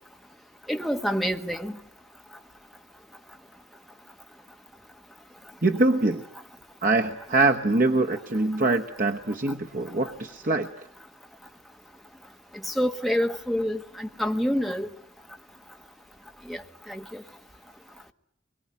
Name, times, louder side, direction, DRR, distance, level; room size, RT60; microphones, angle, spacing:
voice 1, 0.7-1.7 12.7-14.9 16.5-16.6 16.9-17.2, equal, ahead, 1.4 m, -27 dB
voice 2, 5.6-6.2 6.8-10.7, right 2 dB, 50° right, 1.1 m, -23 dB
24.0 x 22.5 x 9.8 m
head